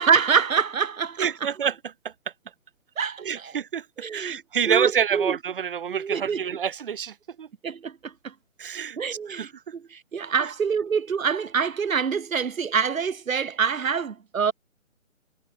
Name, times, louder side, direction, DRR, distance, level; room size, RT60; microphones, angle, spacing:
voice 1, 0.0-1.3 3.0-3.5 4.0-4.4 4.7-5.3 5.9-6.4 7.6-8.3 9.0-9.5 9.9-14.5, right 6 dB, 80° right, 0.9 m, -25 dB
voice 2, 1.2-2.1 3.2-7.5 8.6-9.0 9.3-9.6 10.4-10.5, right 8 dB, 40° right, 1.4 m, -28 dB
figure-of-eight pair, 145°, 40 cm